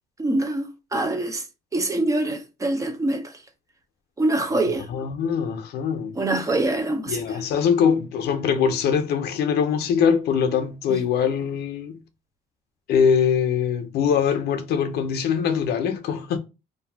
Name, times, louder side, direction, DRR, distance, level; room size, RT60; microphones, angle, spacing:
voice 1, 0.2-1.4 1.7-3.4 4.2-4.9 6.1-7.2 10.9-11.0, right 2 dB, 20° right, 0.5 m, -24 dB
voice 2, 4.8-6.2 7.1-12.0 12.9-16.4, left 7 dB, 70° left, 0.6 m, -22 dB
2.5 x 2.3 x 3.3 m
cardioid pair, 110°, 17 cm